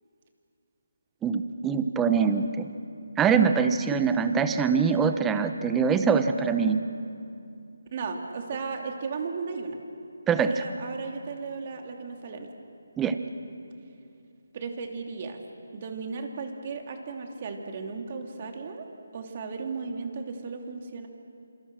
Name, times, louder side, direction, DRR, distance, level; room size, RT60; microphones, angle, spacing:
voice 1, 1.2-2.7 3.2-6.8 10.3-10.5 13.0-13.2, right 6 dB, 10° right, 9 dB, 1.0 m, -23 dB
voice 2, 7.9-9.8 10.3-12.5 14.5-15.4 15.7-18.8 19.1-21.1, right 4 dB, 35° right, 3 dB, 3.0 m, -35 dB
27.5 x 26.5 x 6.4 m, 2.5 s
figure-of-eight pair, 160°, 0 cm